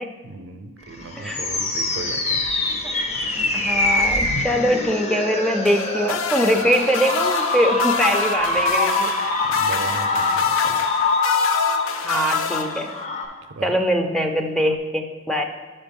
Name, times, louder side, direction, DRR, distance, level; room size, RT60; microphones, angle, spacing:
voice 1, 0.2-2.4 9.5-10.8 13.4-13.8, right 4 dB, 70° right, 9 dB, 0.5 m, -36 dB
sound 1, 0.9-13.3, left 2 dB, 35° left, 0.7 m, -24 dB
voice 2, 3.5-9.1 12.0-12.9 13.6-15.4, equal, ahead, 2 dB, 0.4 m, -22 dB
sound 2, 5.7-13.2 14.6-14.8, left 7 dB, 90° left, 0.4 m, -28 dB
5.7 x 5.2 x 5.2 m, 1.4 s
head